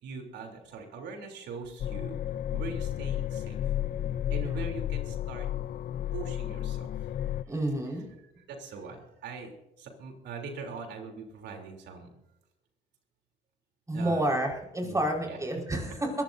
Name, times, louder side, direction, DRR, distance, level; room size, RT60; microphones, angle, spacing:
voice 1, 0.0-2.2 2.5-3.6 4.3-5.5 6.1-6.9 7.2-7.4 8.5-12.1 13.9-14.3 14.8-15.4, right 4 dB, 75° right, 3 dB, 3.5 m, -41 dB
sound 1, 1.8-7.4, left 11 dB, 55° left, 0.6 m, -32 dB
voice 2, 7.5-8.0 13.9-16.2, right 1 dB, 15° right, 1 dB, 5.0 m, -30 dB
22.0 x 15.5 x 2.7 m, 0.94 s
supercardioid pair, 85°, 18 cm